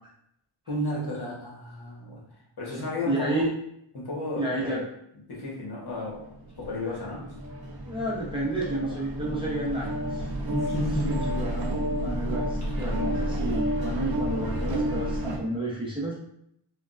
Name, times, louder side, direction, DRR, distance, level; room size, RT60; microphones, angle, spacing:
voice 1, 0.7-2.2 2.6-3.4 3.9-4.8 5.3-7.2 10.5-11.4 11.7-12.1, left 1 dB, 50° left, -4 dB, 1.1 m, -33 dB
voice 2, 2.7-3.5 4.4-4.8 7.8-10.5 11.1-16.2, right 1 dB, 10° right, -7 dB, 0.7 m, -31 dB
sound 1, 6.2-15.4, equal, 50° right, 0.6 m, -30 dB
3.4 x 2.2 x 2.5 m, 0.73 s
wide cardioid pair, 95°, 49 cm